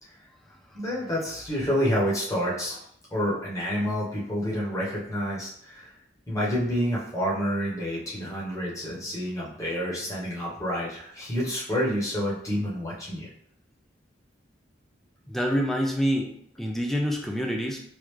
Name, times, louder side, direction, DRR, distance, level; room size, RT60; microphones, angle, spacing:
voice 1, 0.7-2.8 3.1-5.9 6.3-13.3, equal, 15° left, -6 dB, 0.9 m, -28 dB
voice 2, 15.3-17.8, equal, ahead, 0 dB, 0.3 m, -27 dB
3.2 x 2.5 x 3.1 m, 0.68 s
head